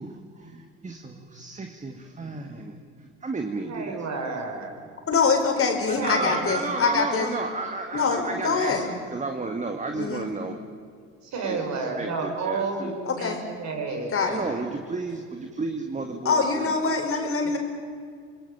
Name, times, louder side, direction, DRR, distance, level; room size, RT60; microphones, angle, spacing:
voice 1, 0.0-3.9 5.9-10.6 11.4-13.0 14.3-17.3, right 3 dB, 20° right, 5 dB, 2.1 m, -33 dB
voice 2, 3.7-4.9 5.9-6.6 11.2-14.8, right 3 dB, 50° right, 3 dB, 6.1 m, -31 dB
voice 3, 5.0-7.3 7.9-8.9 10.0-10.3 13.1-13.4 14.1-14.4 16.2-17.6, left 4 dB, 40° left, 4 dB, 4.8 m, -24 dB
26.5 x 21.0 x 7.4 m, 2.1 s
hypercardioid pair, 70°, 35 cm